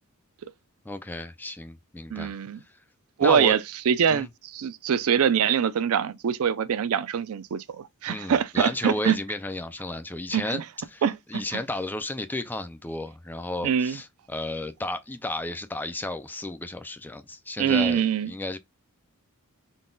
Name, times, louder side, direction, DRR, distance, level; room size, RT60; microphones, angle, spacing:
voice 1, 0.9-2.3 3.2-3.5 4.1-4.3 8.1-10.6 10.9-11.0 11.3-18.6, left 2 dB, 10° left, 0.3 m, -33 dB
voice 2, 2.1-2.6 3.2-9.2 10.3-10.6 11.0-11.6 13.6-14.0 17.6-18.3, right 7 dB, 70° right, 0.4 m, -24 dB
3.9 x 2.2 x 3.8 m
head